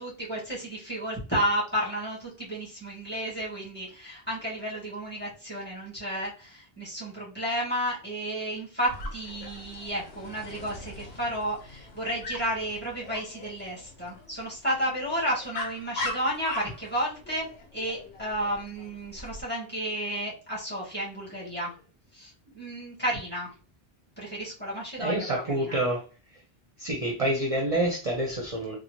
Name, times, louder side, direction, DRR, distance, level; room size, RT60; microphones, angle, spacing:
voice 1, 0.0-17.5 17.7-21.7 22.1-23.5 24.2-25.8, equal, 10° left, -7 dB, 1.8 m, -32 dB
Dog, 8.8-19.4, left 2 dB, 80° left, 1.1 m, -41 dB
voice 2, 25.0-26.0 26.8-28.7, right 1 dB, 40° right, 0 dB, 0.7 m, -27 dB
4.1 x 2.2 x 3.0 m, 0.35 s
omnidirectional pair, 1.0 m